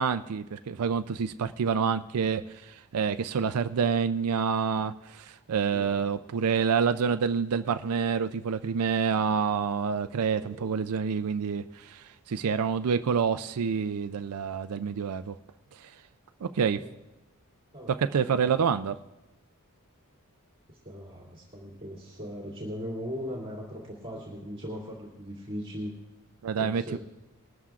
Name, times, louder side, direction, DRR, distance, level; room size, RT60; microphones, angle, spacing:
voice 1, 0.0-15.3 15.8-15.9 16.4-16.8 17.9-19.0 26.4-27.0, right 6 dB, 75° right, 10 dB, 0.4 m, -28 dB
voice 2, 5.7-6.0 10.3-10.7 16.6-16.9 17.7-17.9 18.2-18.5 20.7-25.9 26.6-27.0, equal, 25° right, -4 dB, 2.6 m, -39 dB
21.0 x 13.0 x 2.5 m, 0.98 s
head